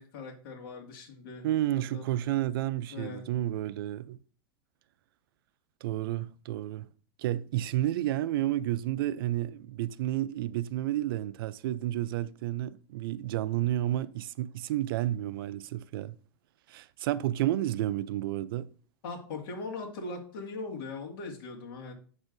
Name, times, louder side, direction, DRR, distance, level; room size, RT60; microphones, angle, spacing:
voice 1, 0.0-1.5 1.7-2.2 2.9-3.2 19.0-21.9, left 3 dB, 65° left, 2.0 m, -40 dB
voice 2, 1.4-4.2 5.8-6.9 7.2-16.2 16.7-18.7, right 13 dB, 65° right, 0.4 m, -31 dB
7.9 x 6.3 x 2.6 m
supercardioid pair, 165°, 13 cm